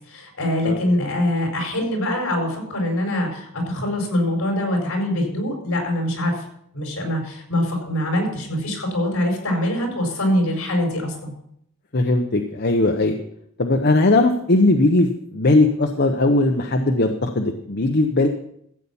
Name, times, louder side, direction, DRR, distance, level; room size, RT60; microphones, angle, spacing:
voice 1, 0.1-6.4 6.7-11.3, left 1 dB, 70° left, 1 dB, 5.0 m, -23 dB
voice 2, 11.9-13.2 13.6-18.3, left 2 dB, 50° left, 4 dB, 0.9 m, -19 dB
14.0 x 8.4 x 5.5 m, 0.71 s
head